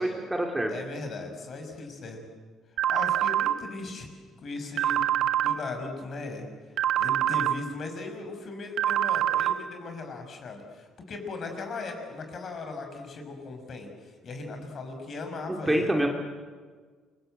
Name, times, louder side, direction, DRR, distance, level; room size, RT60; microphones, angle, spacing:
voice 1, 0.0-0.7 15.7-16.1, right 1 dB, 10° right, 2 dB, 2.7 m, -26 dB
voice 2, 0.7-2.2 2.9-4.1 4.4-6.5 7.0-16.0, left 3 dB, 40° left, 5 dB, 6.0 m, -38 dB
sound 1, 2.8-3.5 4.8-5.5 6.8-7.5 8.8-9.5, right 11 dB, 60° right, 1.4 m, -25 dB
28.5 x 23.5 x 8.0 m, 1.5 s
cardioid pair, 125°, 0 cm